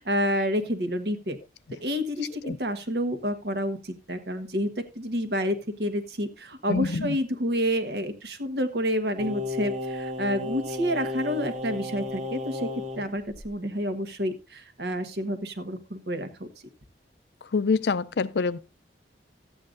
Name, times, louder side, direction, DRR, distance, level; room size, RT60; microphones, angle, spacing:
voice 1, 0.0-1.4 1.8-12.7 13.0-16.5, equal, 65° right, 1.3 m, -29 dB
voice 2, 6.7-7.2 17.5-18.6, left 4 dB, 70° left, 0.5 m, -26 dB
Singing, 9.2-13.0 13.3-13.5, left 2 dB, 45° right, 1.5 m, -33 dB
14.0 x 8.6 x 2.6 m
head